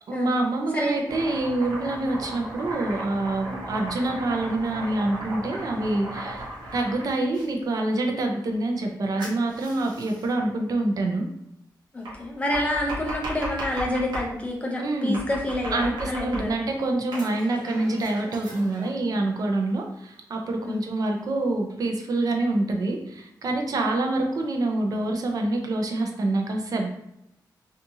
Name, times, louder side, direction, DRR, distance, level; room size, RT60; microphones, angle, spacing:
voice 1, 0.1-6.5 6.7-11.3 14.8-15.2 15.7-26.9, right 2 dB, 55° right, 2 dB, 0.5 m, -26 dB
voice 2, 0.7-1.2 2.0-2.1 3.5-3.6 11.9-16.7 20.6-20.9, left 1 dB, 20° left, -1 dB, 0.5 m, -28 dB
Domestic sounds home sounds, 1.1-7.5 9.2-10.3 12.0-14.3 15.1-16.7 17.1-18.9, right 1 dB, 80° right, 0.9 m, -36 dB
2.6 x 2.4 x 2.7 m, 0.79 s
wide cardioid pair, 155°, 7 cm